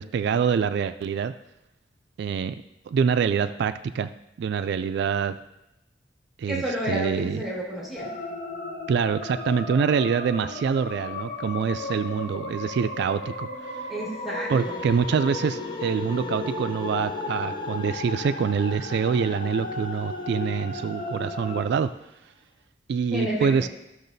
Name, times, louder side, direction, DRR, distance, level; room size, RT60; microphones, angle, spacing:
voice 1, 0.0-1.3 2.2-2.6 2.9-4.1 4.4-5.4 6.4-7.4 8.9-13.5 13.7-13.8 14.5-21.9 22.9-23.7, right 6 dB, 65° right, 10 dB, 0.3 m, -25 dB
voice 2, 6.5-8.1 13.9-14.8 23.1-23.7, equal, ahead, -5 dB, 1.8 m, -30 dB
sound 1, 8.0-21.6, left 3 dB, 50° left, 0.9 m, -35 dB
sound 2, 14.5-21.7, left 2 dB, 25° left, 0.5 m, -40 dB
13.5 x 6.4 x 2.6 m, 0.89 s
head